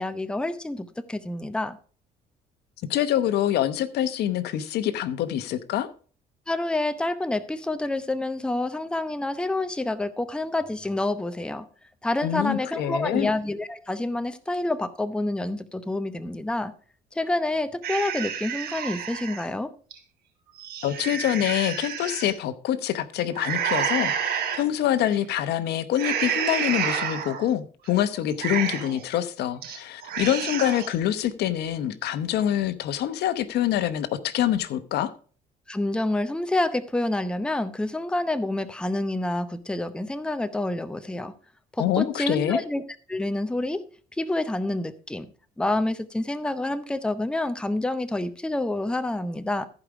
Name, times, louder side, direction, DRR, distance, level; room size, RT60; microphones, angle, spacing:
voice 1, 0.0-1.8 6.5-11.7 12.0-16.7 17.1-19.7 35.7-41.3 41.7-42.8 43.1-43.8 44.2-45.3 45.6-49.6, left 2 dB, 5° left, 0.7 m, -28 dB
voice 2, 2.9-5.9 12.2-13.3 20.8-35.1 41.8-42.6, left 11 dB, 75° left, 0.9 m, -25 dB
sound 1, 17.8-19.4 19.9-20.0 20.5-22.3 23.3-24.6 25.1-25.4 25.9-27.5 27.8-27.9 28.3-29.0 29.4-29.8 30.0-30.9, right 8 dB, 70° right, 3.5 m, -29 dB
14.5 x 5.0 x 4.9 m
cardioid pair, 110°, 17 cm